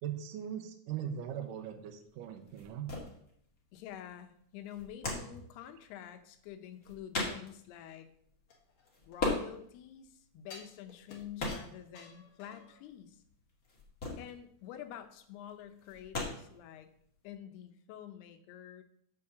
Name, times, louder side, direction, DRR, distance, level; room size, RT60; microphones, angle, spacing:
voice 1, 0.0-2.9, right 9 dB, 75° right, 6 dB, 2.2 m, -40 dB
sound 1, 1.1-17.3, left 2 dB, 30° left, 1.6 m, -40 dB
voice 2, 3.7-8.1 9.1-13.2 14.2-16.9 17.2-18.8, left 10 dB, 85° left, 9 dB, 2.8 m, -48 dB
sound 2, 8.5-9.6 10.5-12.8 13.2-13.3, left 3 dB, 50° left, 1.6 m, -53 dB
7.2 x 5.5 x 6.7 m, 0.68 s
omnidirectional pair, 4.5 m